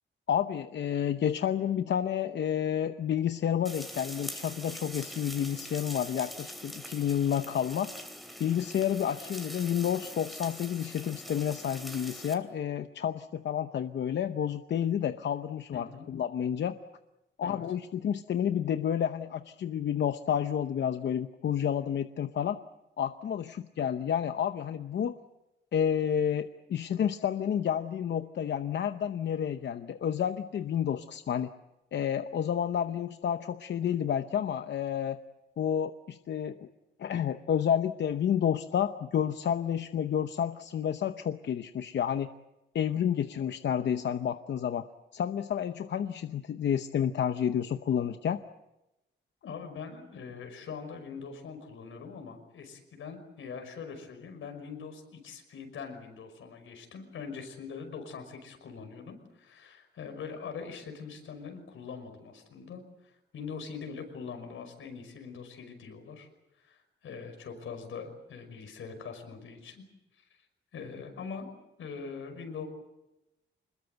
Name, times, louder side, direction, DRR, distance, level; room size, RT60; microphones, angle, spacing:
voice 1, 0.3-7.9 8.4-16.7 17.4-22.6 23.0-25.2 25.7-31.5 31.9-35.2 35.6-36.7 37.0-42.3 42.7-44.8 45.1-48.4, left 9 dB, 60° left, 9 dB, 0.8 m, -30 dB
sound 1, 3.6-12.3, equal, ahead, 3.1 m, -43 dB
voice 2, 15.7-16.1 17.4-17.6 49.4-66.3 66.6-69.8 70.2-70.3 70.7-71.5 71.8-72.7, left 5 dB, 85° left, 6 dB, 5.6 m, -43 dB
26.5 x 21.0 x 8.0 m, 0.94 s
wide cardioid pair, 165°, 20 cm